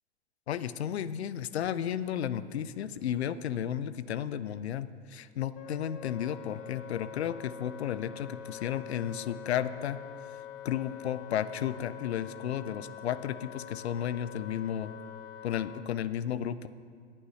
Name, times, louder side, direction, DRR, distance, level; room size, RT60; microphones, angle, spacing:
voice 1, 0.5-10.0 10.6-14.9 15.4-16.7, left 10 dB, 75° left, 15 dB, 0.6 m, -33 dB
Wind instrument woodwind instrument, 5.5-15.8, left 10 dB, 35° left, 0.6 m, -45 dB
20.0 x 8.8 x 3.2 m, 2.1 s
hypercardioid pair, 100°, 33 cm